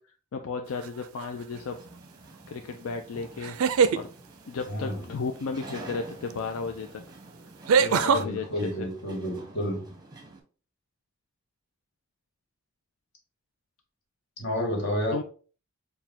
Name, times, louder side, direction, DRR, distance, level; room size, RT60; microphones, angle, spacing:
voice 1, 0.3-1.8 2.5-3.6 3.9-4.1 4.5-7.0 7.8-8.9 15.1-15.2, left 4 dB, 85° left, 5 dB, 0.4 m, -34 dB
sound 1, 0.8-1.2 3.4-4.0 6.3-6.4 7.7-8.2, right 6 dB, 85° right, 0.4 m, -22 dB
sound 2, 1.5-10.4, right 2 dB, 20° right, 0.8 m, -48 dB
voice 2, 4.7-5.1 8.1-9.8 14.4-15.2, equal, 55° left, 0 dB, 1.7 m, -30 dB
4.7 x 2.3 x 3.5 m, 0.39 s
head